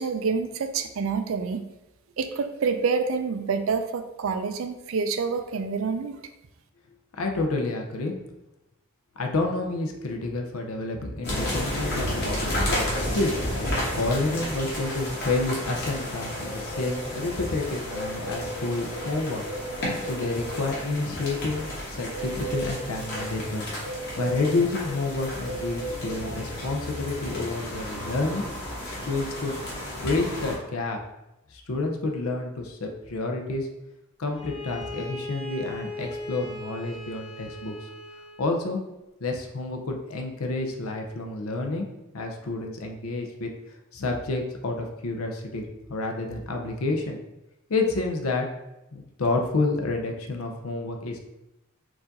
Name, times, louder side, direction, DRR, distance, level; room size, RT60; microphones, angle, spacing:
voice 1, 0.0-1.7 2.2-6.2, right 5 dB, 65° right, 8 dB, 0.4 m, -27 dB
voice 2, 7.2-8.1 9.2-13.4 13.9-19.4 20.1-23.7 24.2-28.5 29.1-29.5 30.0-31.0 31.5-33.7 34.2-37.8 38.4-38.8 39.2-41.9 42.1-43.5 43.9-47.2 47.7-48.5 48.9-51.2, left 2 dB, 85° left, 2 dB, 0.6 m, -29 dB
sound 1, 11.2-30.6, left 1 dB, 50° left, 1.5 m, -32 dB
Bowed string instrument, 34.3-38.5, left 2 dB, 25° left, 0.9 m, -38 dB
4.7 x 2.5 x 4.0 m, 0.94 s
head